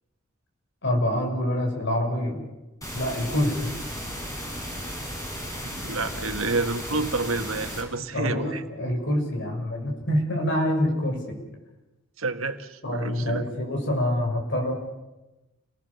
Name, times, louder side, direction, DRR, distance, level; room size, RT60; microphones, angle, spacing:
voice 1, 0.8-2.4 2.9-3.7 8.1-11.4 12.8-14.7, left 1 dB, 60° left, 2 dB, 6.5 m, -26 dB
sound 1, 2.8-7.8, equal, 15° left, 6.5 m, -35 dB
voice 2, 5.6-8.6 12.2-13.5, right 3 dB, 80° right, 7 dB, 1.7 m, -29 dB
29.5 x 19.0 x 7.1 m, 1.0 s
head